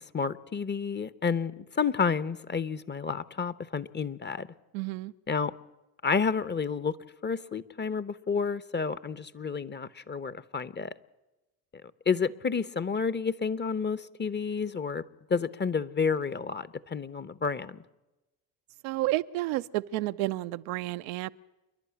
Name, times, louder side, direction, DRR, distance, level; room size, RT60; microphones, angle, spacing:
voice 1, 0.0-4.5 5.3-5.5 6.0-7.0 7.2-10.9 12.1-15.0 15.3-17.8, left 5 dB, 25° left, 17 dB, 0.9 m, -30 dB
voice 2, 4.7-5.1 18.8-21.3, right 17 dB, 85° right, 12 dB, 0.7 m, -31 dB
28.5 x 11.0 x 9.7 m, 1.1 s
supercardioid pair, 65°, 42 cm